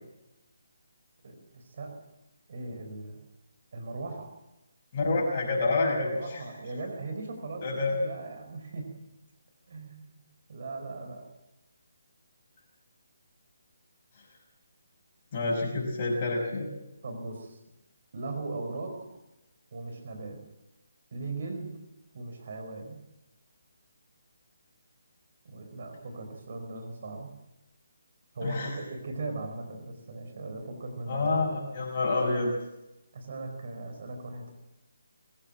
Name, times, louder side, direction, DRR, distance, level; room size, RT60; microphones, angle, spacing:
voice 1, 1.2-1.9 2.5-3.3 3.7-4.3 6.0-8.9 9.7-10.2 10.5-11.2 17.0-17.6 18.1-18.9 19.7-20.4 21.1-21.8 22.1-23.0 25.4-27.3 28.3-31.5 32.2-32.5 33.1-34.5, right 3 dB, 55° right, 5 dB, 4.8 m, -38 dB
voice 2, 4.9-6.4 7.6-8.0 15.3-16.7 28.4-28.7 31.1-32.5, left 3 dB, 40° left, -3 dB, 5.4 m, -28 dB
22.5 x 16.5 x 7.5 m, 0.96 s
figure-of-eight pair, 145°, 0 cm